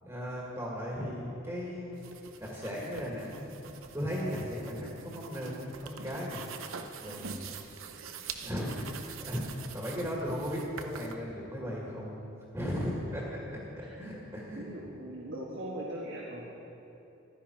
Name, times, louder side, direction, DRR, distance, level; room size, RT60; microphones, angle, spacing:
voice 1, 0.0-2.0 2.4-3.5 3.9-6.5 7.0-7.4 8.4-9.5 9.7-12.2 12.5-14.6, equal, 15° right, -4 dB, 2.0 m, -36 dB
sound 1, 1.9-11.1, right 6 dB, 75° right, 0.8 m, -45 dB
voice 2, 14.5-16.5, right 1 dB, 55° right, -4 dB, 1.7 m, -40 dB
15.0 x 12.5 x 4.6 m, 2.9 s
head